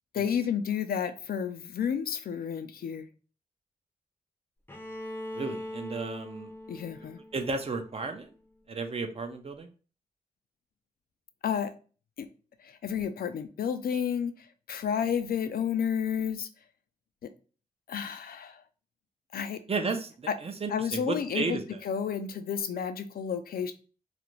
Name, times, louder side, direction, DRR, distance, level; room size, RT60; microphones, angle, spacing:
voice 1, 0.1-3.1 6.7-7.2 11.4-11.7 12.2-12.3 12.6-16.5 17.2-17.3 17.9-18.6 19.3-19.6 20.3-20.4 20.7-23.7, left 7 dB, 70° left, 10 dB, 0.4 m, -31 dB
Bowed string instrument, 4.7-8.5, left 1 dB, 15° left, 0.6 m, -42 dB
voice 2, 5.3-6.5 7.3-8.3 8.7-9.7 19.7-21.8, right 3 dB, 40° right, 6 dB, 0.5 m, -33 dB
2.5 x 2.1 x 3.0 m, 0.37 s
cardioid pair, 50°, 16 cm